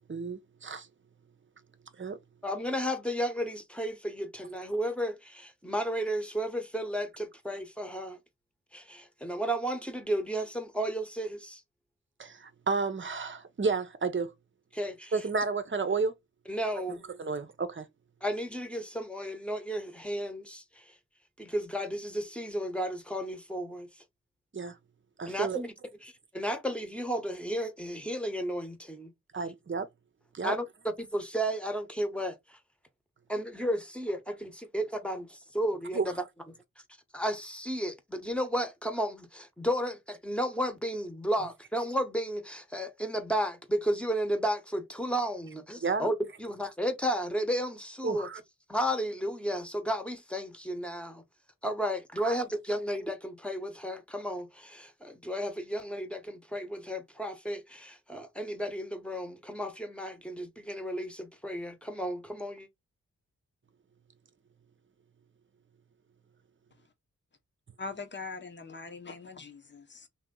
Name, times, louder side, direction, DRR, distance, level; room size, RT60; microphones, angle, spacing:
voice 1, 0.1-0.9 2.0-2.2 12.2-14.3 15.1-16.2 17.2-17.9 24.5-24.8 25.2-25.6 29.3-29.9 30.3-30.5 35.9-36.1 45.8-46.1 48.0-48.4 52.2-52.3, right 4 dB, 40° right, 0.8 m, -31 dB
voice 2, 2.4-8.2 8.7-11.6 14.7-15.1 16.5-17.0 18.2-20.9 21.4-23.9 25.3-25.7 26.0-29.1 30.4-32.6 33.3-36.1 37.1-48.3 48.7-51.2 51.6-62.7, equal, 5° left, 1.0 m, -33 dB
voice 3, 67.8-70.1, left 4 dB, 35° left, 0.9 m, -42 dB
2.9 x 2.8 x 3.7 m
cardioid pair, 65°, 30 cm